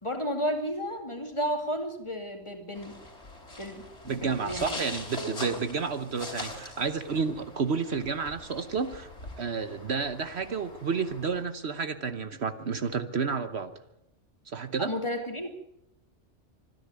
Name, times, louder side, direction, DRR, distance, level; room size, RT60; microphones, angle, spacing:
voice 1, 0.0-3.0 3.6-4.8 14.8-15.5, equal, 25° left, 5 dB, 2.6 m, -32 dB
sound 1, 2.7-11.4, left 1 dB, 65° left, 3.9 m, -43 dB
voice 2, 4.1-9.1 9.4-13.7 14.5-14.9, right 5 dB, 60° right, 11 dB, 1.2 m, -31 dB
25.5 x 10.5 x 9.6 m, 0.83 s
omnidirectional pair, 1.3 m